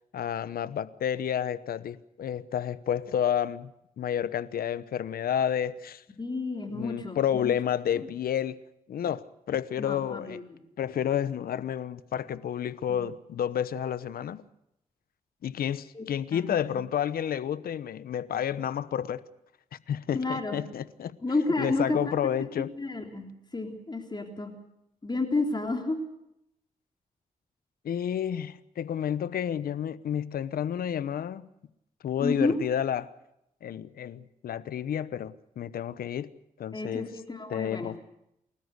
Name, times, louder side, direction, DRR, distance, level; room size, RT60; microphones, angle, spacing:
voice 1, 0.1-3.7 4.0-6.0 6.7-8.6 8.9-10.4 10.8-14.4 15.4-19.2 19.9-21.1 21.6-22.7 27.8-31.5 32.0-33.1 33.6-36.3 36.6-37.1 37.5-38.0, left 9 dB, 85° left, 1.0 m, -30 dB
voice 2, 6.2-7.5 8.0-8.1 9.8-10.6 12.9-13.0 15.9-16.1 16.3-16.7 20.1-20.6 21.2-22.2 22.8-23.3 23.5-24.5 25.0-26.0 32.2-32.6 36.7-37.9, left 2 dB, 30° left, 3.5 m, -31 dB
29.5 x 13.5 x 8.1 m
cardioid pair, 65°, 15 cm